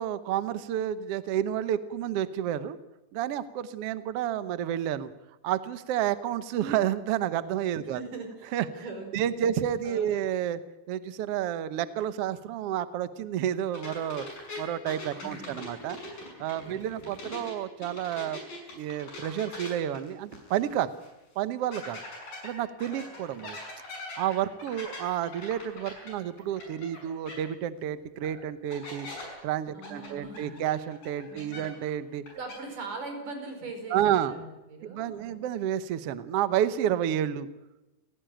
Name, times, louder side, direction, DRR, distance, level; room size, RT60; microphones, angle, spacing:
voice 1, 0.0-2.8 3.1-5.1 5.4-8.0 8.5-8.7 9.1-10.6 10.9-14.3 14.6-16.0 16.4-18.4 18.7-20.9 21.3-22.0 22.4-23.6 24.2-29.1 29.4-32.2 33.9-34.3 34.8-37.5, right 10 dB, 90° right, 13 dB, 1.3 m, -30 dB
voice 2, 7.8-9.5 9.8-10.3 15.2-15.8 16.6-17.2 29.7-30.6 31.3-31.7 32.3-35.4, right 3 dB, 60° right, 5 dB, 6.3 m, -42 dB
sound 1, 13.7-17.5 17.8-20.7 21.0-21.1 21.7-27.0 27.3-27.4 28.2-28.3 28.7-29.2 29.8-31.9 32.2-32.6, left 2 dB, 65° left, 8.2 m, -42 dB
29.0 x 16.5 x 9.1 m, 1.0 s
omnidirectional pair, 4.2 m